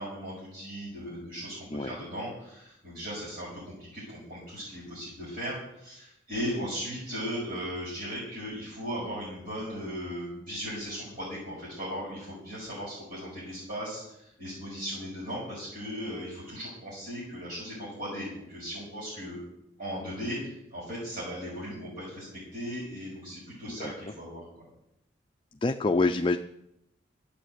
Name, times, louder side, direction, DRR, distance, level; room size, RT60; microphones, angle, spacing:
voice 1, 0.0-19.4 19.8-24.4, equal, 45° right, -8 dB, 6.6 m, -37 dB
voice 2, 25.6-26.4, left 3 dB, 25° left, 6 dB, 0.4 m, -26 dB
13.0 x 8.5 x 8.0 m, 0.80 s
head